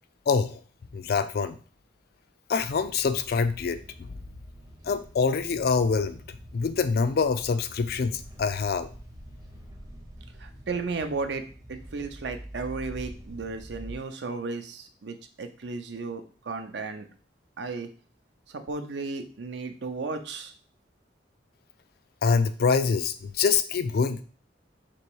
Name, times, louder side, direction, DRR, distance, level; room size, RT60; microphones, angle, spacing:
voice 1, 0.3-0.6 0.9-1.6 2.5-3.8 4.8-8.9 22.2-24.2, left 5 dB, 55° left, 11 dB, 0.4 m, -25 dB
sound 1, 2.6-14.0, equal, 20° right, 0.6 m, -45 dB
voice 2, 10.4-17.1 17.6-17.9 18.5-20.5, right 4 dB, 70° right, 7 dB, 0.6 m, -34 dB
3.1 x 3.0 x 4.6 m, 0.42 s
head